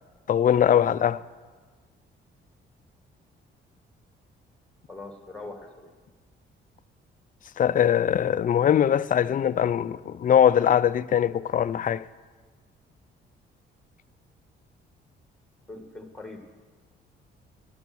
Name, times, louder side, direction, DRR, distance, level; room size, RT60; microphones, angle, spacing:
voice 1, 0.3-1.2 7.6-12.1, left 9 dB, 45° left, 0.4 m, -21 dB
voice 2, 4.9-5.9 15.7-16.5, left 2 dB, 5° left, 1.9 m, -41 dB
11.5 x 10.5 x 6.2 m
cardioid pair, 90°, 20 cm